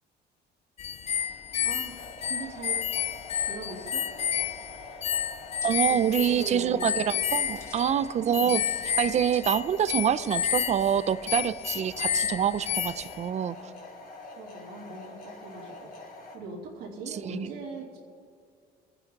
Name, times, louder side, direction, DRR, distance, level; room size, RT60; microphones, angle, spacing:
sound 1, 0.8-13.3, left 8 dB, 40° left, 0.4 m, -31 dB
sound 2, 1.1-16.4, left 2 dB, 55° left, 2.8 m, -45 dB
voice 1, 1.6-2.8 3.4-4.1 5.9-6.9 8.2-8.6 14.4-18.0, right 3 dB, 80° right, -5 dB, 3.1 m, -40 dB
sound 3, 4.2-4.8 5.6-5.7 7.3-8.0 8.3-9.0 9.3-9.9, left 2 dB, 15° left, 2.1 m, -53 dB
voice 2, 5.6-8.6 9.0-13.7 17.1-17.5, right 9 dB, 40° right, 15 dB, 0.5 m, -26 dB
25.5 x 9.9 x 4.0 m, 2.2 s
cardioid pair, 110°, 17 cm